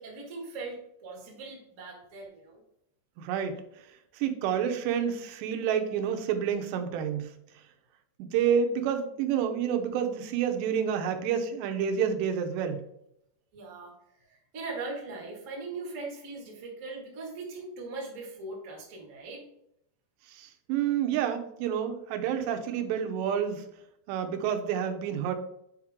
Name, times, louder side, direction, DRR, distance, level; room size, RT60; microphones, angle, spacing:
voice 1, 0.0-2.6 13.5-13.9 14.2-19.4, right 3 dB, 50° right, -2 dB, 0.9 m, -40 dB
voice 2, 3.2-3.6 4.1-7.3 8.2-12.8 20.3-23.7 24.1-25.4, right 8 dB, 90° right, 6 dB, 3.0 m, -29 dB
8.0 x 4.7 x 3.6 m, 0.77 s
omnidirectional pair, 4.8 m